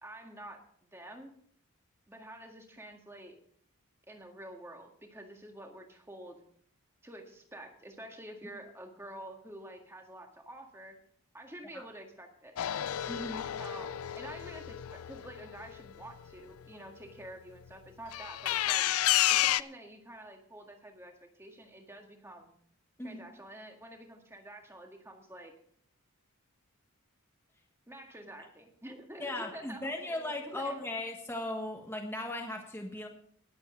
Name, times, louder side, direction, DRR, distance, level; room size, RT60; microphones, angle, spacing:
voice 1, 0.0-1.3 2.1-3.4 4.1-6.4 7.0-11.0 11.3-12.6 13.6-18.8 19.3-22.5 23.0-25.5 27.9-30.9, right 1 dB, 10° right, 3 dB, 1.8 m, -48 dB
sound 1, 12.6-16.3 18.1-19.6, left 13 dB, 80° left, 0.4 m, -31 dB
voice 2, 13.1-13.5 23.0-23.2 29.2-33.1, left 1 dB, 10° left, 1 dB, 1.4 m, -37 dB
20.5 x 8.2 x 3.8 m, 0.63 s
head